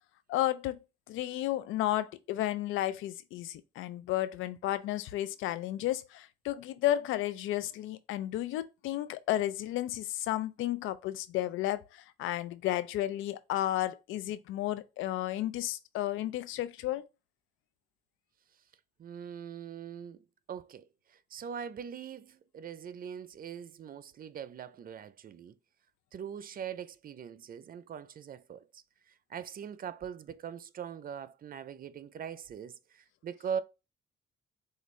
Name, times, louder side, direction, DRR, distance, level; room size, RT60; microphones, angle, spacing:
voice 1, 0.3-17.0, left 14 dB, 90° left, 0.5 m, -33 dB
voice 2, 19.0-25.5 26.1-28.8 29.3-33.6, right 8 dB, 45° right, 0.5 m, -42 dB
6.5 x 2.6 x 3.1 m
cardioid pair, 90°, 20 cm